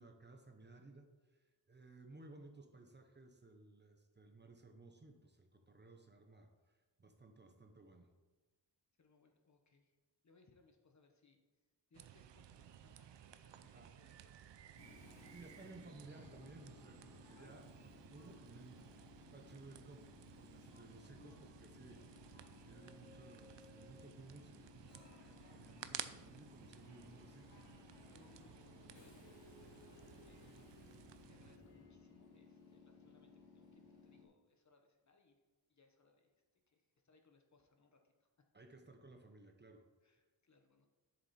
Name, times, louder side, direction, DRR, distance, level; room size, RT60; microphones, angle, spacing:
voice 1, 0.0-8.1 13.6-13.9 15.3-22.0 22.6-27.5 38.5-39.9, right 3 dB, 25° right, 4 dB, 0.9 m, -59 dB
voice 2, 9.0-10.0 10.2-11.4 11.9-16.0 17.4-17.6 20.4-20.5 27.5-27.6 28.1-30.7 31.3-35.4 35.7-36.3 36.7-38.5 40.0-40.9, left 3 dB, 40° left, 4 dB, 1.2 m, -71 dB
sound 1, 11.9-31.6, right 10 dB, 75° right, 0.6 m, -56 dB
Train / Subway metro underground, 14.8-34.2, left 5 dB, 85° left, 2.7 m, -61 dB
10.5 x 7.4 x 4.3 m, 1.2 s
wide cardioid pair, 140°, 44 cm